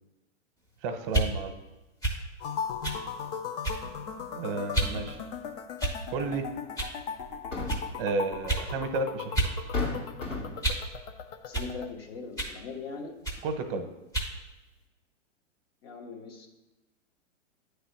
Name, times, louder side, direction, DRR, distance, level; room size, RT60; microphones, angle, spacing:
voice 1, 0.8-1.6 4.4-5.2 6.1-6.5 8.0-9.4 13.4-13.9, right 3 dB, 45° right, 7 dB, 0.9 m, -32 dB
sound 1, 1.0-1.3 2.0-2.2 2.8-3.0 3.6-3.9 4.7-5.0 5.8-6.2 6.8-7.0 7.7-7.8 8.5-8.7 9.3-9.6 9.9-10.9 11.5-11.7 12.4-12.6 13.2-13.4 14.1-14.3, right 2 dB, 10° left, 0.9 m, -30 dB
sound 2, 2.4-11.9, left 6 dB, 35° left, 0.4 m, -38 dB
sound 3, 7.2-8.0 9.1-9.2 9.7-10.7, left 3 dB, 75° left, 2.0 m, -33 dB
voice 2, 11.4-13.2 15.8-16.5, left 4 dB, 50° left, 1 dB, 1.4 m, -40 dB
9.1 x 3.4 x 5.8 m, 1.0 s
hypercardioid pair, 115°, 38 cm